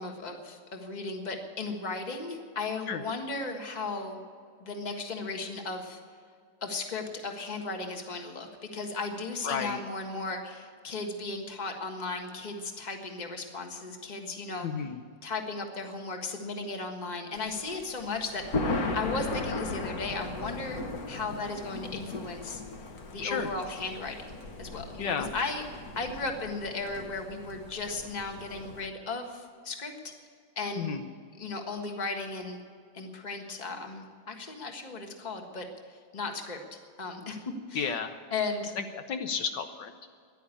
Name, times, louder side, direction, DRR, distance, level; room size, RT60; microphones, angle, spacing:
voice 1, 0.0-4.2 4.6-6.0 6.6-14.7 15.2-22.6 23.1-30.1 30.5-31.0 31.4-32.6 32.9-37.4 37.7-37.9 38.3-38.7, left 3 dB, 25° left, 3 dB, 1.5 m, -36 dB
voice 2, 9.4-9.8 14.6-15.0 23.2-23.5 25.0-25.3 30.8-31.0 37.7-38.2 38.8-39.9, left 6 dB, 70° left, 7 dB, 1.5 m, -32 dB
Thunder, 17.4-28.9, left 2 dB, 55° left, 1.6 m, -37 dB
14.5 x 10.5 x 8.4 m, 2.2 s
omnidirectional pair, 2.0 m